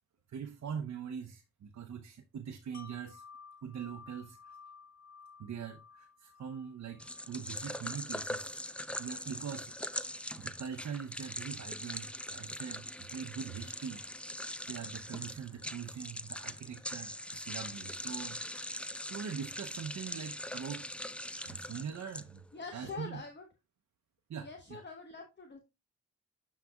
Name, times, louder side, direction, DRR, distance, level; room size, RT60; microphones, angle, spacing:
voice 1, 0.3-3.2 3.6-4.6 5.4-8.7 9.0-9.8 10.1-14.2 14.7-18.8 19.1-20.9 21.5-22.4 22.7-23.2 24.3-24.8, right 7 dB, 65° right, 0.8 m, -43 dB
Wind chime, 2.7-8.5 8.9-9.1, left 5 dB, 65° left, 0.9 m, -56 dB
sound 1, 7.0-22.6, left 1 dB, 5° left, 0.5 m, -42 dB
voice 2, 22.5-23.5 24.4-25.6, left 4 dB, 35° left, 1.2 m, -44 dB
12.5 x 4.1 x 2.3 m
supercardioid pair, 45°, 30 cm